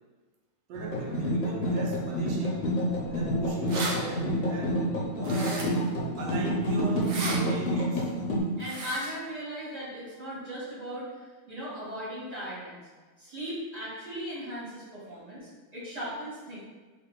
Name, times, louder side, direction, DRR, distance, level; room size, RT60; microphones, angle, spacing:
sound 1, 0.7-8.4, equal, 60° left, 0.8 m, -28 dB
voice 1, 0.7-2.7 3.1-5.9 6.2-8.1 15.1-15.2, right 3 dB, 85° right, 0 dB, 1.3 m, -40 dB
sound 2, 3.7-3.9 5.2-5.9 7.0-7.4 8.6-9.1, right 3 dB, 65° right, 0.7 m, -34 dB
voice 2, 8.6-11.1 11.5-12.8 13.2-16.6, equal, 25° right, -10 dB, 1.3 m, -37 dB
2.8 x 2.8 x 3.6 m, 1.3 s
omnidirectional pair, 1.9 m